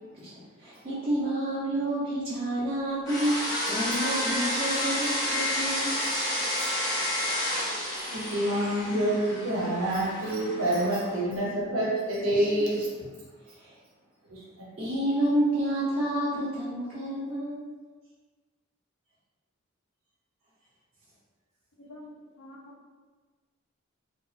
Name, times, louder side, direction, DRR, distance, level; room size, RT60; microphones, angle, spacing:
voice 1, 0.6-6.0 12.4-12.5 13.6-13.7 14.8-17.7, right 1 dB, 30° right, -11 dB, 0.5 m, -29 dB
sound 1, 3.1-11.2, left 1 dB, 20° left, 0.6 m, -30 dB
voice 2, 8.1-13.1 14.3-14.6, right 1 dB, 80° right, -5 dB, 0.8 m, -27 dB
voice 3, 21.8-22.9, left 1 dB, 85° left, -3 dB, 0.6 m, -48 dB
2.8 x 2.0 x 2.4 m, 1.4 s
head